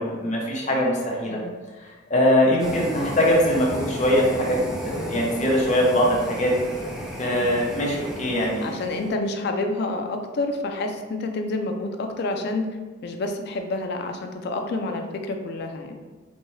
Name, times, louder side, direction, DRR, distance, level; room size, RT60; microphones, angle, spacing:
voice 1, 0.0-1.4 2.1-4.6 4.8-6.5 7.2-8.7, equal, 40° left, -3 dB, 0.8 m, -22 dB
voice 2, 1.2-1.6 2.6-2.7 7.6-7.8 8.6-12.7 13.0-16.0, left 2 dB, 60° left, 5 dB, 0.4 m, -29 dB
sound 1, 2.6-9.1, equal, ahead, 0.5 m, -34 dB
4.1 x 2.2 x 3.1 m, 1.4 s
head